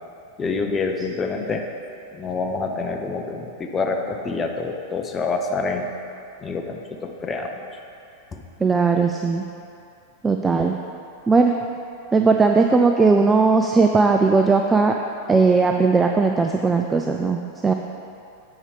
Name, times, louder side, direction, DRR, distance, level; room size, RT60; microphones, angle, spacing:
voice 1, 0.4-1.7 2.1-5.9 6.4-7.6 8.3-8.4, left 4 dB, 20° left, 3 dB, 0.7 m, -27 dB
voice 2, 8.6-9.4 10.2-10.7 11.3-11.5 12.1-15.0 15.3-17.7, right 4 dB, 15° right, 3 dB, 0.3 m, -18 dB
7.1 x 4.7 x 5.2 m, 2.6 s
figure-of-eight pair, 90°, 0 cm